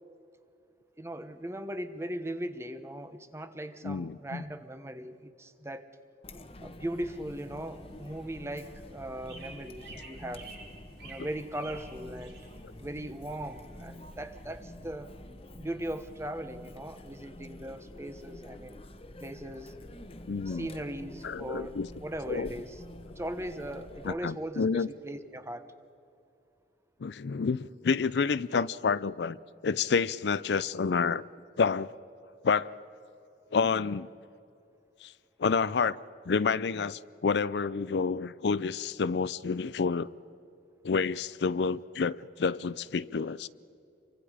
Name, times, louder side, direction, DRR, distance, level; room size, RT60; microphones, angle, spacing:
voice 1, 1.0-5.9 6.6-10.5 11.0-12.4 12.8-15.1 15.6-18.8 19.2-19.7 20.4-22.8 23.1-25.7, right 1 dB, 15° right, 1.0 m, -39 dB
voice 2, 3.8-4.4 20.3-20.7 21.2-21.9 22.3-22.5 24.0-24.9 27.0-29.4 29.6-31.2 31.6-31.9 32.4-32.7 33.5-34.1 35.0-35.1 35.4-36.0 36.3-40.1 40.8-43.5, left 5 dB, 70° left, 0.5 m, -29 dB
Chatter, 6.2-24.1, left 1 dB, 35° left, 1.1 m, -48 dB
sound 1, 7.2-14.6, right 3 dB, 80° right, 7.7 m, -52 dB
28.5 x 24.0 x 5.0 m
head